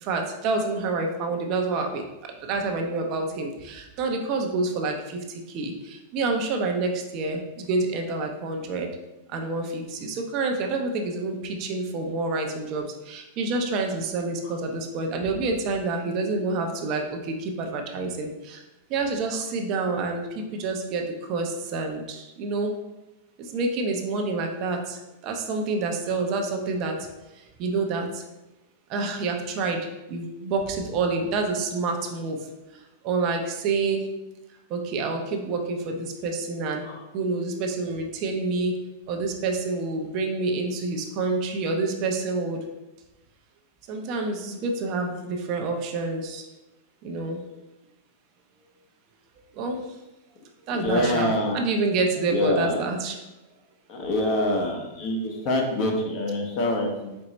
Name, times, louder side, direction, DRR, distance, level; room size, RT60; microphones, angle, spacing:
voice 1, 0.0-8.9 9.3-18.6 18.9-22.8 23.4-27.1 27.3-28.2 28.9-34.1 34.7-36.8 37.1-38.8 39.1-42.6 43.9-46.5 47.0-47.4 49.5-49.9 50.7-53.2, right 3 dB, 45° right, 3 dB, 0.6 m, -28 dB
voice 2, 50.7-51.6 52.3-52.8 53.9-57.2, left 1 dB, 45° left, 1 dB, 0.9 m, -25 dB
4.4 x 2.0 x 3.9 m, 0.99 s
hypercardioid pair, 125°, 0 cm